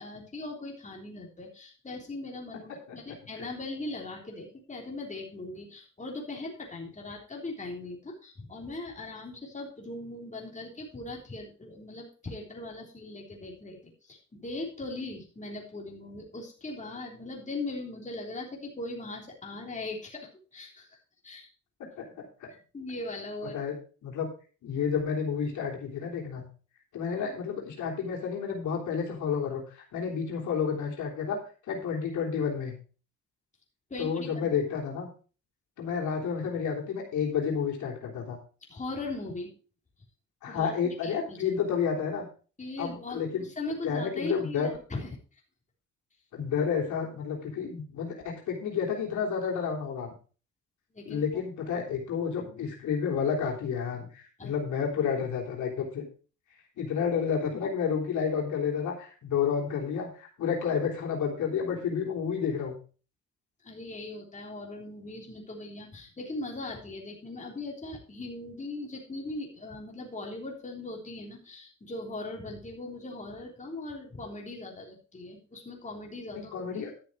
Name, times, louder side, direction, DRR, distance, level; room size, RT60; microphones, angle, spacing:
voice 1, 0.0-21.0 21.2-21.5 22.7-23.6 33.9-34.5 38.7-39.5 40.5-41.5 42.6-45.4 50.9-51.2 54.4-54.6 63.6-76.9, left 2 dB, 25° left, -1 dB, 3.5 m, -39 dB
voice 2, 22.0-22.5 23.5-23.7 24.0-24.3 24.6-26.5 26.9-31.4 31.7-32.7 34.0-35.1 35.8-38.4 40.4-42.3 42.8-43.5 43.8-44.7 46.3-50.1 51.0-56.1 56.8-62.7 76.3-76.9, left 6 dB, 75° left, -1 dB, 3.4 m, -30 dB
11.5 x 6.7 x 4.7 m, 0.37 s
cardioid pair, 90°, 30 cm